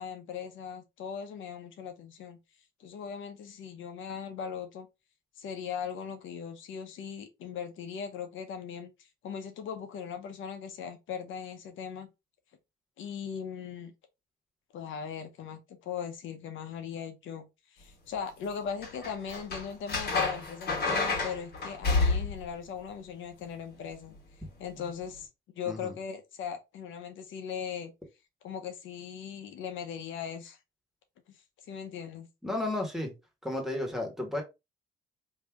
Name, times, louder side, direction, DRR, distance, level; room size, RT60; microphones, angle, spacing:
voice 1, 0.0-2.4 2.8-4.9 5.4-8.9 9.2-12.1 13.0-13.9 14.7-24.2 24.6-25.3 25.6-27.9 28.4-30.6 31.3-31.4 31.6-32.3, left 7 dB, 75° left, 0.7 m, -39 dB
sound 1, 18.8-22.5 24.7-24.9, left 3 dB, 55° left, 1.6 m, -29 dB
voice 2, 32.4-33.1 33.4-34.4, left 2 dB, ahead, 1.6 m, -33 dB
3.2 x 2.7 x 3.5 m
cardioid pair, 90°, 20 cm